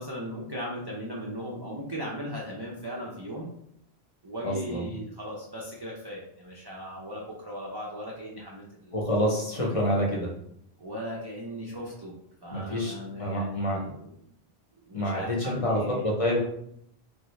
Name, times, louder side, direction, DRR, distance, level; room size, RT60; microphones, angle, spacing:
voice 1, 0.0-3.5 4.2-9.0 9.5-9.9 10.8-12.2 12.4-14.3 14.8-16.0, equal, 35° right, -3 dB, 0.4 m, -38 dB
voice 2, 4.4-4.9 8.9-10.3 12.5-13.8 14.9-16.4, equal, 40° left, -2 dB, 0.7 m, -27 dB
3.3 x 2.4 x 3.1 m, 0.72 s
omnidirectional pair, 1.1 m